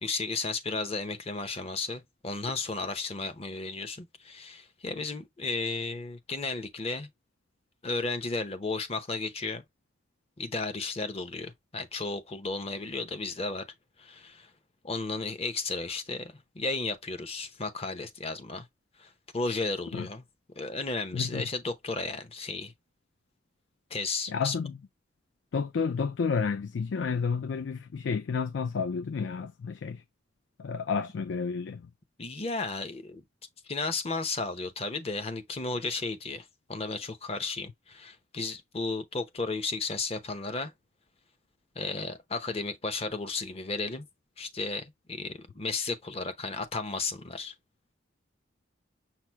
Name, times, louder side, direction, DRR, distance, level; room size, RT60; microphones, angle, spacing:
voice 1, 0.0-7.1 7.8-9.6 10.4-13.6 14.0-14.5 14.8-18.7 19.0-20.2 20.6-22.7 23.9-24.5 32.2-33.2 33.6-40.7 41.8-44.1 44.4-47.5, left 3 dB, 35° left, 0.7 m, -34 dB
voice 2, 21.1-21.4 24.3-24.7 25.5-30.0 30.6-31.9, left 5 dB, 85° left, 0.4 m, -31 dB
5.8 x 2.0 x 4.4 m
head